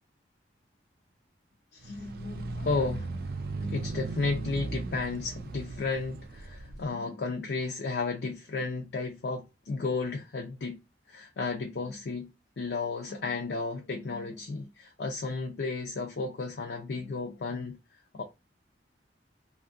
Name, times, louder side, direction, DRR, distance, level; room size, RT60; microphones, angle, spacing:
voice 1, 1.7-3.2 3.6-10.8 11.1-17.8 18.1-18.2, left 3 dB, 65° left, 0.5 m, -33 dB
sound 1, 1.8-6.8, right 3 dB, 55° right, 0.3 m, -37 dB
2.6 x 2.4 x 2.4 m
head